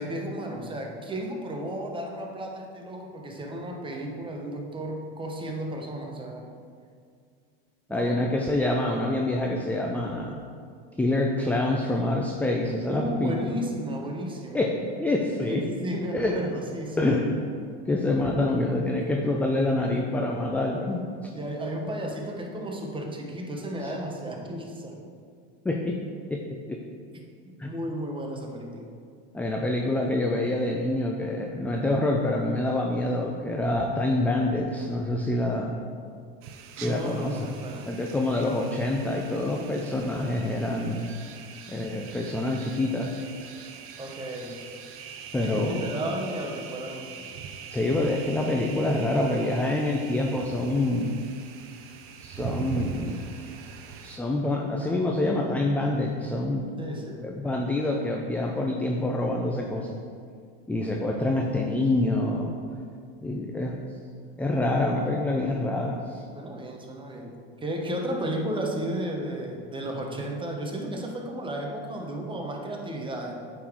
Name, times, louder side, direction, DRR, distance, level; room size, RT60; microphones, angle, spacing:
voice 1, 0.0-6.5 7.9-8.2 12.9-14.7 15.5-17.2 21.3-25.0 27.6-28.9 36.8-37.9 44.0-44.6 45.4-47.2 56.8-57.4 66.3-67.3 67.6-73.4, right 1 dB, 15° right, 1 dB, 1.0 m, -33 dB
voice 2, 7.9-10.4 11.0-13.3 14.5-15.6 16.1-16.3 17.0-17.3 17.9-21.3 23.8-23.9 25.6-25.9 26.3-26.4 26.7-26.8 27.6-27.7 29.3-35.8 36.7-37.5 37.9-41.1 41.7-43.1 45.3-45.9 47.7-51.2 52.2-53.2 54.0-56.6 57.2-60.0 60.7-62.5 63.2-63.8 64.4-66.2, left 2 dB, 5° left, 1 dB, 0.4 m, -26 dB
sound 1, 36.4-54.2, right 6 dB, 45° right, 0.7 m, -42 dB
8.3 x 3.9 x 4.6 m, 2.2 s
supercardioid pair, 110°, 30 cm